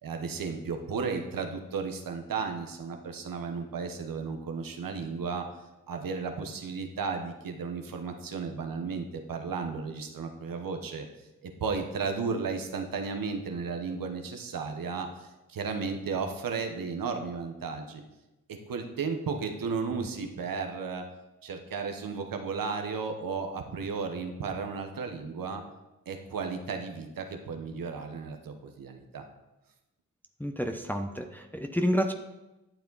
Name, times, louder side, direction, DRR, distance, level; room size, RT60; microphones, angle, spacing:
voice 1, 0.0-5.4 5.9-11.1 11.4-18.0 18.5-21.1 21.4-25.6 26.1-29.2, right 5 dB, 85° right, 5 dB, 1.1 m, -34 dB
voice 2, 30.4-32.1, equal, 5° left, 4 dB, 0.9 m, -29 dB
11.5 x 7.0 x 4.0 m, 1.0 s
cardioid pair, 40°, 33 cm